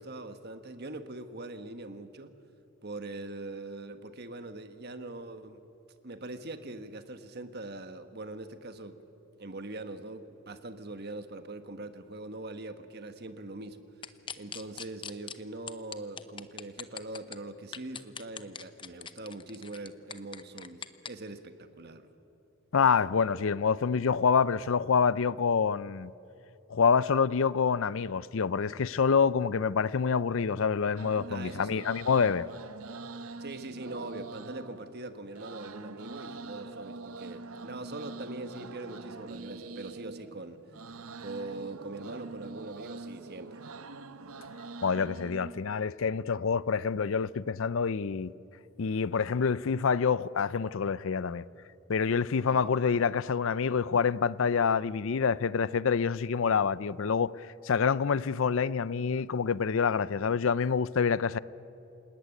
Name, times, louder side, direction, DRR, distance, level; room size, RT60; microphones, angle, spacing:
voice 1, 0.0-2.3 2.8-5.6 6.0-9.0 9.4-13.8 14.4-22.1 31.3-31.9 33.4-40.6 41.2-43.6 52.5-52.7, right 2 dB, 50° right, 1.4 m, -42 dB
sound 1, 14.0-15.3 15.7-17.4 17.7-21.1, left 7 dB, 25° left, 0.7 m, -41 dB
voice 2, 22.7-26.1 26.7-32.5 44.8-48.3 48.8-51.4 51.9-57.3 57.6-61.4, left 6 dB, 65° left, 0.5 m, -27 dB
sound 2, 31.0-45.8, right 3 dB, 80° right, 0.9 m, -44 dB
sound 3, 33.1-42.9, right 1 dB, 5° right, 1.9 m, -57 dB
28.0 x 18.0 x 9.9 m
head